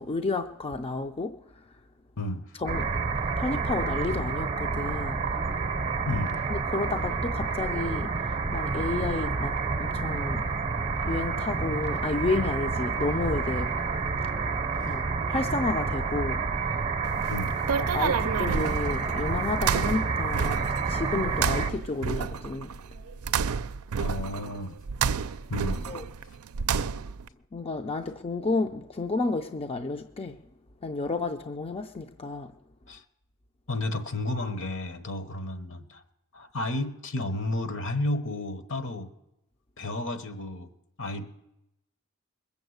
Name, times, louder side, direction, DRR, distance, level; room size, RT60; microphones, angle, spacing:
voice 1, 0.0-1.6 2.5-2.9 3.4-5.2 6.5-10.5 11.1-13.7 14.9-15.0 15.3-16.8 17.8-20.6 20.9-22.7 25.9-26.0 27.5-30.4 30.8-32.5, left 3 dB, 30° left, 0.5 m, -31 dB
voice 2, 2.2-2.5 6.1-6.4 17.3-17.5 24.0-24.8 25.5-25.9 32.9-33.0 33.7-36.0 36.3-39.1 39.8-40.7 41.0-41.4, left 2 dB, 65° left, 1.2 m, -32 dB
sound 1, 2.7-21.7, right 4 dB, 30° right, 0.7 m, -29 dB
sound 2, 17.1-27.3, right 6 dB, 85° right, 0.5 m, -31 dB
21.0 x 7.1 x 8.0 m
head